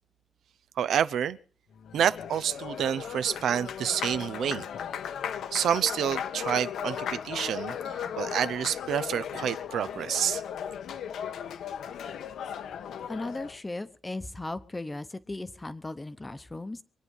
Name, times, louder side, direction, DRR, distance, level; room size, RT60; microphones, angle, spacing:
voice 1, 0.8-1.4 1.9-4.7 5.5-10.4, right 9 dB, 80° right, 0.7 m, -28 dB
Applause, 1.8-13.6, left 8 dB, 80° left, 1.2 m, -36 dB
voice 2, 13.1-16.8, left 2 dB, 15° left, 0.9 m, -37 dB
24.5 x 9.8 x 5.4 m
wide cardioid pair, 175°, 0 cm